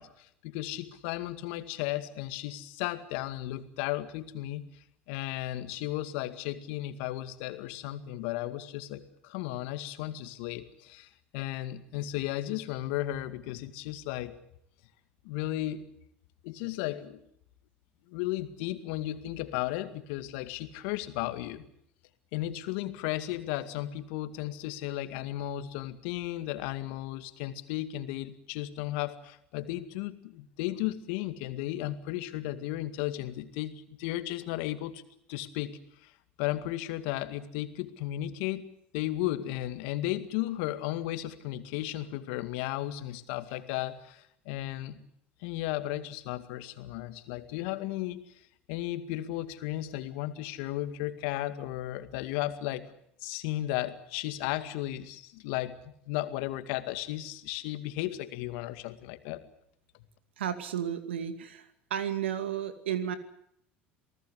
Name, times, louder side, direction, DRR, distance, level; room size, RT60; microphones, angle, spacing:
voice 1, 0.0-4.6 5.1-14.3 15.2-15.9 16.4-17.2 18.1-21.6 22.3-35.0 35.3-36.1 36.4-38.7 38.9-45.0 45.4-48.3 48.7-52.9 53.2-59.4, left 15 dB, 70° left, 10 dB, 2.2 m, -35 dB
voice 2, 60.4-63.2, right 9 dB, 85° right, 10 dB, 2.4 m, -33 dB
28.0 x 18.5 x 8.1 m, 0.72 s
hypercardioid pair, 75°, 6 cm